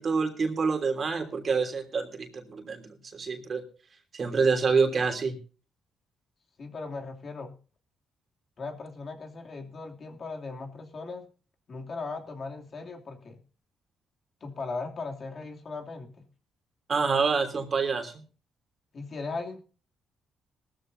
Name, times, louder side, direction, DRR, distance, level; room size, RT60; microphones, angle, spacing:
voice 1, 0.0-3.6 4.1-5.4 16.9-18.1, right 5 dB, 45° right, 5 dB, 3.1 m, -27 dB
voice 2, 6.6-7.6 8.6-11.2 11.7-13.4 14.4-16.3 18.9-19.6, left 3 dB, 45° left, 2 dB, 2.8 m, -38 dB
18.5 x 13.5 x 2.7 m, 0.37 s
cardioid pair, 90°, 0 cm